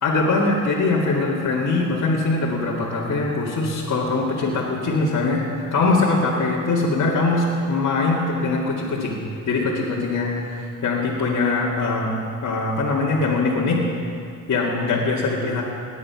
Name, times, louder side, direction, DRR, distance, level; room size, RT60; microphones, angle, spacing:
voice 1, 0.0-9.2 9.5-13.8 14.5-15.6, left 3 dB, 55° left, -6 dB, 2.4 m, -22 dB
18.5 x 9.9 x 5.9 m, 2.4 s
cardioid pair, 85°, 34 cm